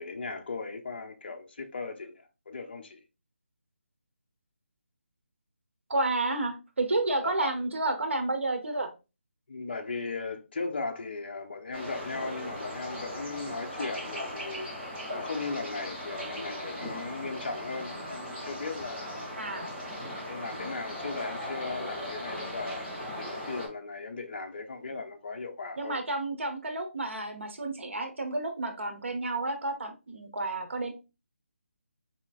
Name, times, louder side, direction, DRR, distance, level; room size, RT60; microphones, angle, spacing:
voice 1, 0.0-3.0 7.2-7.6 9.5-14.7 15.1-19.4 20.3-26.0, left 3 dB, 45° left, 0.6 m, -37 dB
voice 2, 5.9-8.9 19.4-19.7 25.8-30.9, right 2 dB, 65° right, 1.0 m, -31 dB
sound 1, 11.7-23.7, equal, 5° right, 0.9 m, -38 dB
4.3 x 3.1 x 2.4 m
figure-of-eight pair, 170°, 7 cm